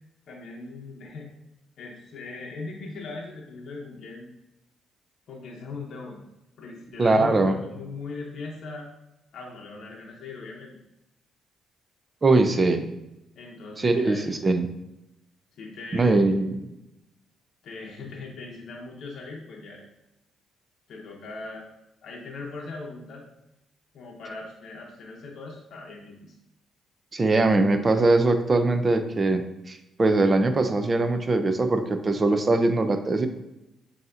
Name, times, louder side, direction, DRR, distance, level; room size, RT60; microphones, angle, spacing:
voice 1, 0.3-1.3 1.8-4.3 5.3-6.2 6.6-8.9 9.3-10.7 13.4-14.3 15.6-16.3 17.6-19.8 20.9-21.7 22.0-23.2 23.9-26.3, left 3 dB, 65° left, -2 dB, 0.7 m, -39 dB
voice 2, 7.0-7.5 12.2-12.9 13.8-14.7 15.9-16.6 27.1-29.4 29.7-33.3, right 2 dB, 30° right, 8 dB, 0.5 m, -21 dB
6.8 x 2.7 x 2.5 m, 0.90 s
cardioid pair, 90°, 0 cm